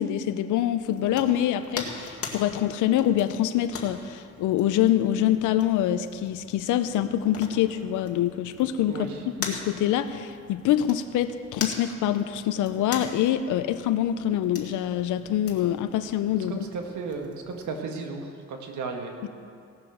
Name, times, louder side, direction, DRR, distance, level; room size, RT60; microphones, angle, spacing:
voice 1, 0.0-9.1 9.4-16.7, left 11 dB, 85° left, 10 dB, 0.6 m, -25 dB
sound 1, 0.8-17.8, left 4 dB, 50° left, 1.9 m, -42 dB
voice 2, 8.9-9.2 16.5-19.1, right 4 dB, 75° right, 3 dB, 1.8 m, -34 dB
17.0 x 6.8 x 6.4 m, 2.3 s
cardioid pair, 90°, 30 cm